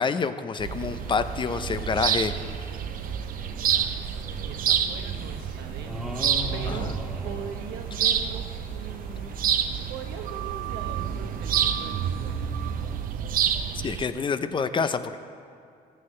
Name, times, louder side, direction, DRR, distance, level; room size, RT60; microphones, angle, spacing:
voice 1, 0.0-2.3 6.7-6.9 13.8-15.2, left 5 dB, 30° left, 11 dB, 0.6 m, -27 dB
sound 1, 0.6-14.0, right 8 dB, 55° right, 0.7 m, -28 dB
sound 2, 0.7-13.0, left 3 dB, 75° left, 2.6 m, -53 dB
voice 2, 3.6-3.9 4.4-6.2 6.5-6.9 7.2-12.5, right 7 dB, 85° right, 5 dB, 1.2 m, -41 dB
sound 3, 5.9-8.4, left 1 dB, ahead, 1.6 m, -36 dB
15.5 x 14.0 x 3.3 m, 2.3 s
cardioid pair, 110°, 17 cm